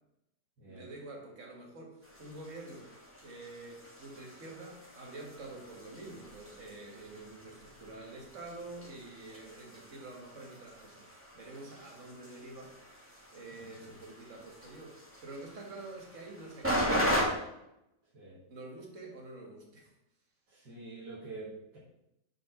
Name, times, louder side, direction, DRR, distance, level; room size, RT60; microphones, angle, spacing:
voice 1, 0.7-2.9 3.2-12.8 13.3-17.1 18.5-19.9, right 2 dB, 50° right, 1 dB, 2.0 m, -47 dB
sound 1, 2.0-17.2, equal, 10° right, 2.0 m, -39 dB
voice 2, 20.5-21.8, right 3 dB, 90° right, -8 dB, 2.7 m, -46 dB
7.2 x 5.1 x 5.9 m, 0.85 s
omnidirectional pair, 1.8 m